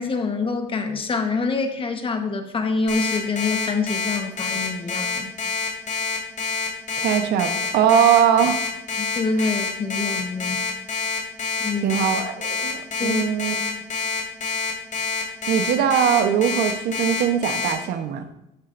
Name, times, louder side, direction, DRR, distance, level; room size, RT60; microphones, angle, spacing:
voice 1, 0.0-5.3 9.0-10.7 11.6-12.0 13.0-13.2, left 4 dB, 30° left, 5 dB, 1.3 m, -26 dB
Alarm, 2.9-17.7, left 5 dB, 50° left, 2.9 m, -26 dB
voice 2, 7.0-8.6 9.4-9.5 11.8-13.6 15.5-18.3, right 8 dB, 75° right, 7 dB, 1.0 m, -21 dB
10.0 x 9.9 x 2.6 m, 0.84 s
cardioid pair, 110°, 17 cm